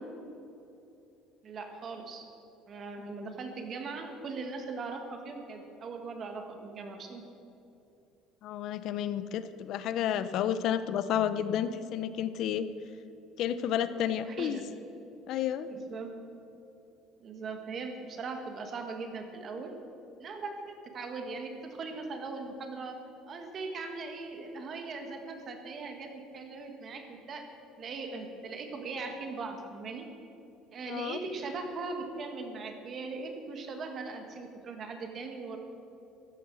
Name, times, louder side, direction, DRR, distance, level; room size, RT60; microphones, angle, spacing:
voice 1, 1.4-2.3 2.7-7.2 14.2-14.6 15.7-16.1 17.2-19.7 20.2-23.0 23.3-27.5 27.8-30.1 30.7-35.6, right 4 dB, 35° right, 4 dB, 1.8 m, -39 dB
voice 2, 8.4-12.6 13.4-14.6 15.3-15.7 30.9-31.2, left 9 dB, 55° left, 12 dB, 0.7 m, -31 dB
15.0 x 12.5 x 6.4 m, 2.8 s
cardioid pair, 155°, 0 cm